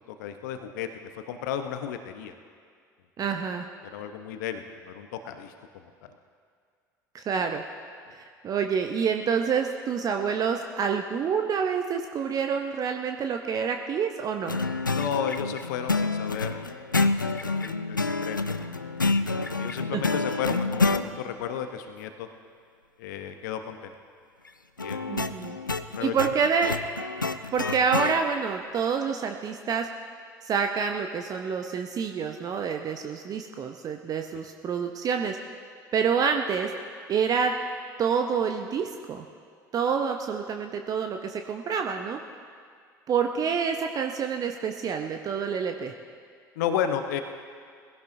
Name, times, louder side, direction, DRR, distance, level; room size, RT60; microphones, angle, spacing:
voice 1, 0.1-0.9 1.1-2.3 3.2-3.3 3.9-5.9 14.9-16.5 17.4-18.4 19.0-22.3 23.0-23.9 24.8-26.3 46.6-47.2, left 8 dB, 65° left, 8 dB, 0.9 m, -33 dB
voice 2, 3.2-3.7 7.1-7.6 8.1-14.6 19.9-20.0 25.1-25.6 26.0-26.7 27.5-29.9 30.4-35.4 35.9-36.7 37.1-37.6 38.0-39.2 39.7-42.2 43.1-45.9, right 6 dB, 35° right, 5 dB, 0.8 m, -27 dB
sound 1, 14.5-21.1 24.8-28.2, left 3 dB, 90° left, 0.4 m, -28 dB
21.0 x 16.5 x 2.7 m, 2.1 s
figure-of-eight pair, 65°, 10 cm